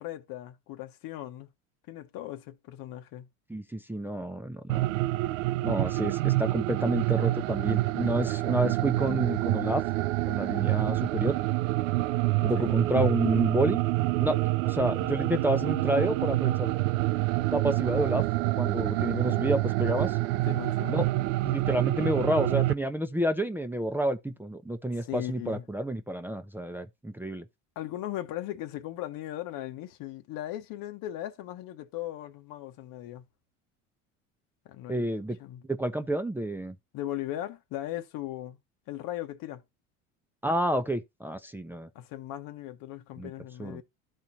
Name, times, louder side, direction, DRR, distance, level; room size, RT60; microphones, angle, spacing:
voice 1, 0.0-1.5 1.9-3.3 12.5-12.7 20.5-21.0 25.0-25.6 27.7-33.2 34.6-35.1 35.4-35.6 36.9-38.6 38.9-39.6 41.9-43.8, left 13 dB, 60° left, 1.3 m, -38 dB
voice 2, 3.5-4.8 5.6-9.8 10.3-11.4 12.4-13.8 14.2-14.4 14.6-16.7 17.5-18.2 18.6-20.2 20.9-21.1 21.4-27.4 34.9-35.4 35.7-36.7 40.4-41.9 43.2-43.3 43.6-43.8, right 1 dB, 5° right, 0.7 m, -29 dB
sound 1, 4.7-22.7, right 19 dB, 85° right, 0.5 m, -27 dB
13.0 x 4.5 x 2.8 m
supercardioid pair, 85°, 38 cm